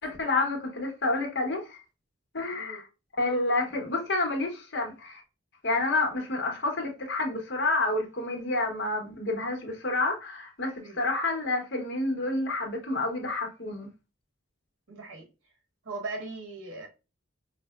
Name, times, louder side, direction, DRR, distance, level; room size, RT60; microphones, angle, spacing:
voice 1, 0.0-1.8 2.3-2.9 3.2-5.2 5.6-13.9, left 2 dB, 60° left, 1.3 m, -29 dB
voice 2, 14.9-15.3 15.8-16.9, right 3 dB, 85° right, 1.5 m, -38 dB
5.2 x 2.2 x 2.4 m
head